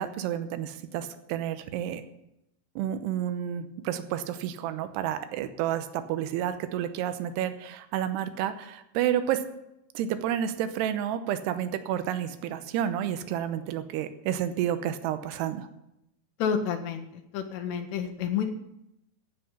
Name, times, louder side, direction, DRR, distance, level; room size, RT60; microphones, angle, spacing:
voice 1, 0.0-2.0 2.8-9.4 9.9-15.7, right 10 dB, 85° right, 10 dB, 2.9 m, -30 dB
voice 2, 16.4-18.5, left 7 dB, 80° left, 5 dB, 3.0 m, -30 dB
15.0 x 5.8 x 9.5 m, 0.84 s
omnidirectional pair, 4.8 m